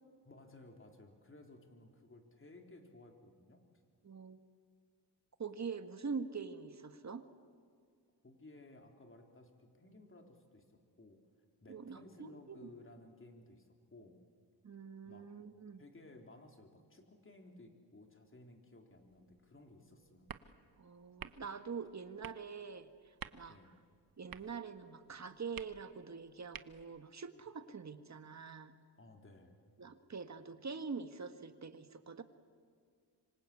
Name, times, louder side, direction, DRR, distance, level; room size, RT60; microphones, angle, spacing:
voice 1, 0.3-3.6 8.2-11.2 11.6-14.2 15.0-15.3 15.8-20.3 23.5-23.8 29.0-29.6, left 2 dB, 30° left, 4 dB, 3.6 m, -58 dB
voice 2, 4.0-4.4 5.4-7.2 11.7-12.6 14.6-15.8 20.8-22.9 23.3-23.6 24.2-28.8 29.8-32.2, right 5 dB, 40° right, 9 dB, 1.7 m, -44 dB
sound 1, 18.9-27.1, right 8 dB, 55° right, 1.1 m, -54 dB
26.5 x 25.5 x 8.4 m, 2.1 s
cardioid pair, 95°, 41 cm